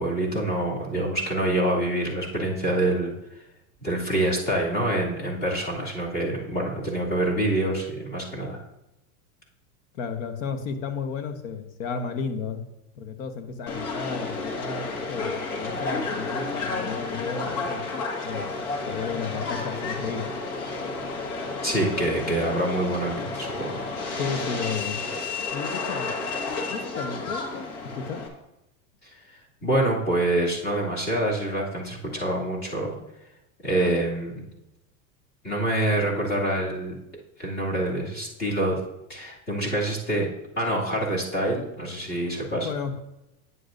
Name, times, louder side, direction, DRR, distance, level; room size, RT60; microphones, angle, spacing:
voice 1, 0.0-3.1 3.8-8.6 21.6-23.8 29.3-32.9 33.6-34.4 35.4-37.0 37.4-38.8 39.1-40.3 40.6-42.7, right 1 dB, 25° left, -4 dB, 2.5 m, -26 dB
voice 2, 9.9-12.6 13.0-17.8 18.2-18.5 18.9-20.3 24.2-25.0 25.5-26.1 26.7-27.7 27.9-28.2 42.6-43.0, left 5 dB, 65° left, 7 dB, 1.2 m, -33 dB
Subway metro underground, 13.7-28.3, left 3 dB, 80° left, 1.9 m, -31 dB
9.5 x 8.1 x 2.6 m, 0.90 s
supercardioid pair, 135°, 43 cm